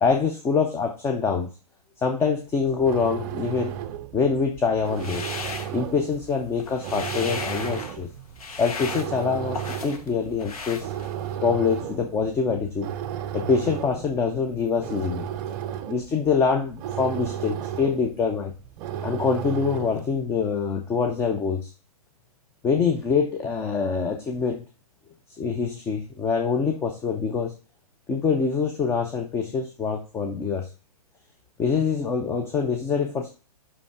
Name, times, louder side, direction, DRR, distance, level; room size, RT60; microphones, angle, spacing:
voice 1, 0.0-1.5 2.0-3.7 4.1-5.3 5.7-8.1 8.6-10.9 11.4-12.9 13.3-15.3 15.9-18.5 19.0-21.7 22.6-24.6 25.4-27.5 28.1-30.7 31.6-33.3, left 5 dB, 15° left, 4 dB, 0.6 m, -25 dB
sound 1, 2.6-20.2, right 10 dB, 30° right, 0.6 m, -34 dB
sound 2, 4.9-6.2 6.5-8.0 8.4-10.1 10.4-11.3, left 5 dB, 70° left, 1.3 m, -36 dB
5.6 x 5.3 x 4.7 m, 0.35 s
figure-of-eight pair, 125°, 20 cm